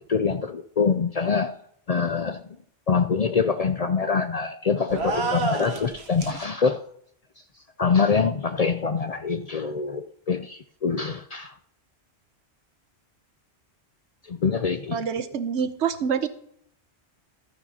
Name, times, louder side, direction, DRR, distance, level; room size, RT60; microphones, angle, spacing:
voice 1, 0.0-1.5 1.9-2.6 2.9-6.8 7.8-11.6 14.3-15.0, left 5 dB, 50° left, 9 dB, 0.4 m, -25 dB
sound 1, 4.9-6.4, right 3 dB, 70° right, 1.4 m, -29 dB
voice 2, 14.9-16.3, right 7 dB, 85° right, 11 dB, 1.1 m, -26 dB
14.0 x 9.6 x 2.9 m, 0.70 s
omnidirectional pair, 1.1 m